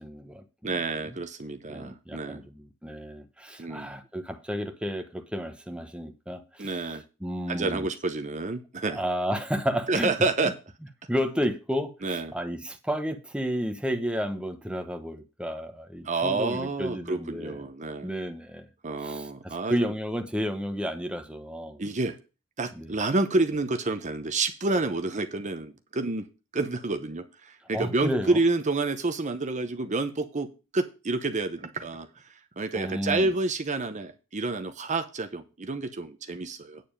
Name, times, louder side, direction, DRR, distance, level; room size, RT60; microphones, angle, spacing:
voice 1, 0.0-0.7 1.0-1.2 1.7-7.9 8.9-10.1 10.4-10.5 11.1-17.6 18.0-18.7 19.0-21.8 22.7-22.9 27.7-28.4 32.7-33.3, equal, 5° right, 1.0 m, -32 dB
voice 2, 0.6-2.4 3.6-3.9 6.6-7.0 7.5-9.0 9.9-10.5 12.0-12.3 16.0-18.1 18.8-19.9 21.8-22.2 22.6-26.3 26.5-30.5 30.7-36.8, right 3 dB, 35° right, 0.8 m, -29 dB
9.3 x 6.9 x 5.1 m
head